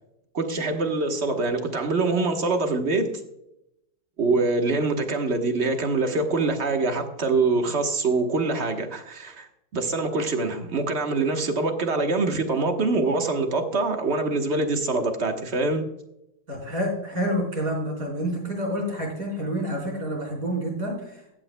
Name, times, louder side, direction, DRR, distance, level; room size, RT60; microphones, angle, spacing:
voice 1, 0.3-3.1 4.2-15.9, right 3 dB, 45° right, 5 dB, 1.4 m, -24 dB
voice 2, 16.5-21.4, equal, 60° right, -1 dB, 4.6 m, -28 dB
15.0 x 9.5 x 2.2 m, 0.83 s
omnidirectional pair, 1.7 m